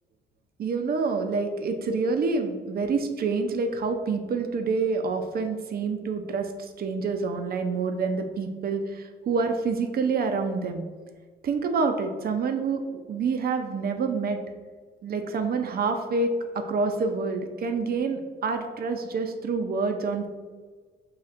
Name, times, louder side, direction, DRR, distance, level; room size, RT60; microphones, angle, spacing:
voice 1, 0.6-10.8 11.4-12.8 13.1-14.4 15.0-20.3, right 4 dB, 50° right, 6 dB, 0.6 m, -27 dB
5.8 x 3.1 x 2.5 m, 1.5 s
cardioid pair, 90°, 20 cm